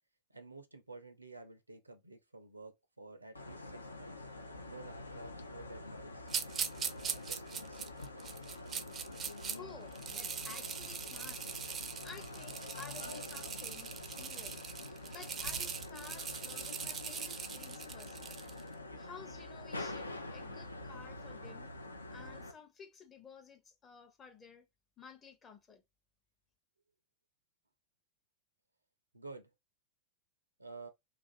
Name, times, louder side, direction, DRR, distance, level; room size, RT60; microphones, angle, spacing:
voice 1, 0.3-4.3 4.6-6.3 6.9-7.8 29.1-29.5 30.6-30.9, right 3 dB, 85° right, 0.5 m, -51 dB
sound 1, 3.4-22.5, left 2 dB, 80° left, 0.4 m, -46 dB
sound 2, 6.3-9.6 9.9-18.6, right 7 dB, 25° right, 0.4 m, -41 dB
voice 2, 9.5-11.4 12.0-14.6 14.9-18.2 19.0-21.7 22.1-24.6 25.0-25.8, left 5 dB, 20° left, 0.6 m, -54 dB
2.5 x 2.4 x 2.5 m
figure-of-eight pair, 90°, 0 cm